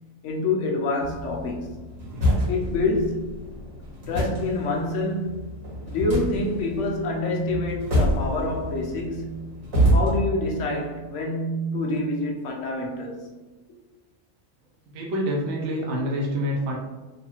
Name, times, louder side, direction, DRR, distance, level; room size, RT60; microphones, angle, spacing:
voice 1, 0.2-1.9 2.5-3.3 4.1-5.5 5.9-9.5 9.9-13.4 13.7-13.8, left 2 dB, 65° left, 1.0 m, -27 dB
sound 1, 1.0-10.2, equal, 80° right, 1.8 m, -27 dB
voice 2, 14.9-16.8, equal, 60° right, 0.9 m, -26 dB
3.9 x 2.6 x 2.8 m
omnidirectional pair, 1.4 m